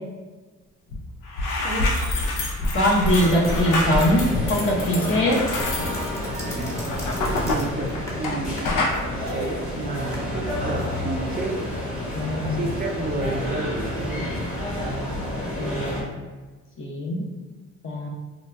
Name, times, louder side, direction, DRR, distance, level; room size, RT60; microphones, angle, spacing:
sound 1, 0.9-1.0 1.3-8.4 8.6-9.0, left 2 dB, 85° left, 0.7 m, -26 dB
voice 1, 2.7-5.4 12.1-12.6 14.8-15.1 15.6-16.0 16.8-17.2 17.8-18.1, equal, 45° left, -3 dB, 0.9 m, -22 dB
sound 2, 3.2-16.0, left 1 dB, 25° left, 1.2 m, -30 dB
sound 3, 5.1-10.2, left 1 dB, 10° left, 0.8 m, -37 dB
voice 2, 7.1-7.9 8.2-8.6 9.1-11.6 12.5-14.2, right 3 dB, 30° right, 2 dB, 0.4 m, -30 dB
4.0 x 2.4 x 2.3 m, 1.3 s
cardioid pair, 90°, 30 cm